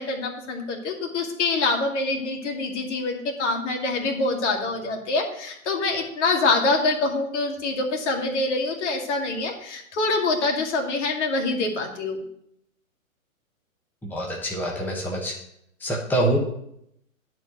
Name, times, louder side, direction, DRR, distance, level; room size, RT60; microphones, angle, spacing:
voice 1, 0.0-12.2, left 3 dB, 55° left, 2 dB, 2.4 m, -25 dB
voice 2, 14.0-15.4 15.8-16.4, right 1 dB, 5° left, -2 dB, 1.4 m, -25 dB
10.5 x 4.6 x 7.8 m, 0.76 s
hypercardioid pair, 125°, 42 cm